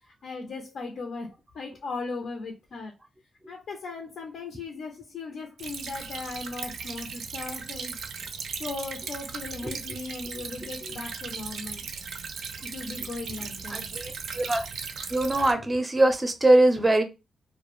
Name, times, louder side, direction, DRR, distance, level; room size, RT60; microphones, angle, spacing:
voice 1, 0.2-2.9 3.5-8.0 8.5-11.9 12.6-13.9, left 3 dB, 70° left, 0.5 m, -37 dB
Stream / Trickle dribble, 5.6-15.5, right 5 dB, 70° right, 0.4 m, -37 dB
voice 2, 13.7-14.7 15.1-17.0, right 1 dB, 15° right, 0.5 m, -22 dB
2.3 x 2.1 x 2.9 m
wide cardioid pair, 135°, 0 cm